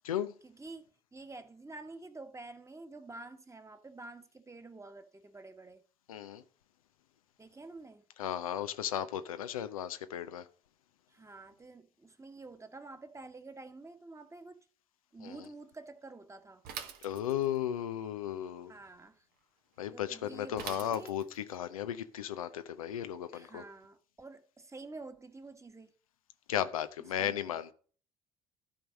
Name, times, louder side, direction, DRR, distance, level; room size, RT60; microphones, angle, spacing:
voice 1, 0.4-5.8 7.4-8.0 11.1-14.6 15.1-16.6 18.7-19.2 19.9-21.1 23.3-25.9 27.2-27.6, right 3 dB, 15° right, 1.4 m, -49 dB
voice 2, 6.1-6.4 8.2-10.4 15.2-15.4 17.0-18.7 19.8-23.6 26.5-27.7, left 10 dB, 85° left, 0.5 m, -35 dB
Bicycle / Mechanisms, 16.6-17.6 20.6-21.5, right 8 dB, 60° right, 1.2 m, -44 dB
13.0 x 4.6 x 6.3 m
figure-of-eight pair, 55°, 18 cm